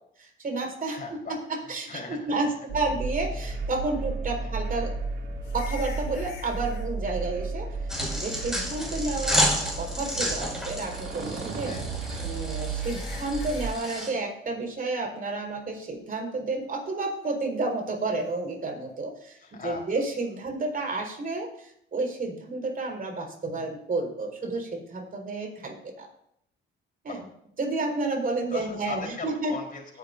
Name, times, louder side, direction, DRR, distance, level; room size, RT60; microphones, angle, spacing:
voice 1, 0.2-1.0 1.7-4.9 5.5-9.4 9.8-11.7 12.2-26.1 27.0-27.2 27.6-29.5, right 3 dB, 45° right, 1 dB, 4.7 m, -31 dB
voice 2, 0.9-2.4 4.4-4.5 11.6-11.9 19.4-19.8 27.1-27.2 28.5-30.0, left 4 dB, 45° left, 1 dB, 4.2 m, -39 dB
sound 1, 2.7-13.7, right 3 dB, 70° right, 2.5 m, -33 dB
sound 2, 5.4-6.9 8.5-9.1 9.4-9.5 10.1-10.6 12.0-12.1 12.7-14.1 18.2-18.4, left 6 dB, 65° left, 3.5 m, -47 dB
sound 3, 7.9-14.1, equal, 5° right, 5.7 m, -31 dB
20.0 x 10.5 x 2.7 m, 0.73 s
cardioid pair, 90°, 20 cm